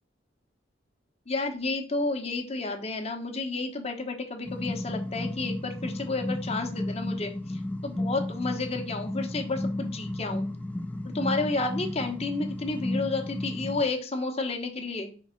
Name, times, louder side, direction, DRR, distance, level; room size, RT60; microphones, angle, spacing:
voice 1, 1.3-10.5 11.1-15.1, left 3 dB, 35° left, 4 dB, 1.1 m, -31 dB
sound 1, 4.4-13.8, left 1 dB, 10° left, 0.4 m, -33 dB
5.5 x 3.6 x 5.7 m, 0.38 s
head